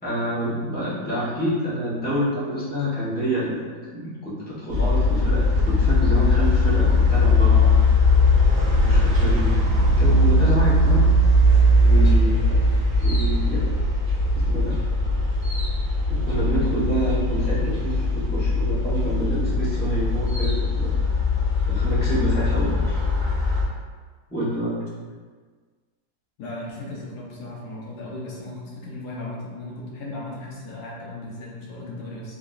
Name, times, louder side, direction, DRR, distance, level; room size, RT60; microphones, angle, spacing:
voice 1, 0.0-3.7 3.9-8.1 8.7-11.1 11.8-13.7 14.3-14.8 16.1-20.9 21.7-23.0 24.3-24.8, right 1 dB, 5° left, -11 dB, 0.9 m, -27 dB
sound 1, 4.7-23.6, left 2 dB, 50° right, 1.0 m, -20 dB
voice 2, 26.4-32.4, left 2 dB, 70° left, -4 dB, 1.3 m, -36 dB
3.9 x 2.7 x 2.4 m, 1.5 s
omnidirectional pair, 1.9 m